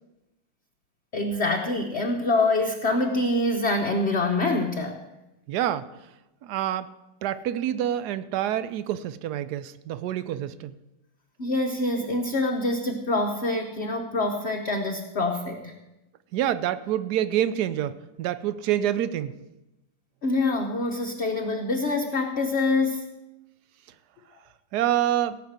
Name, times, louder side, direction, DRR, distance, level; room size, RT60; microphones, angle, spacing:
voice 1, 1.1-5.0 11.4-15.8 20.2-23.1, left 2 dB, 50° left, 2 dB, 0.8 m, -25 dB
voice 2, 5.5-5.9 6.4-6.9 7.2-10.8 16.3-19.4 24.7-25.4, right 11 dB, 70° right, 14 dB, 0.9 m, -27 dB
17.0 x 5.8 x 8.0 m, 0.96 s
omnidirectional pair, 2.3 m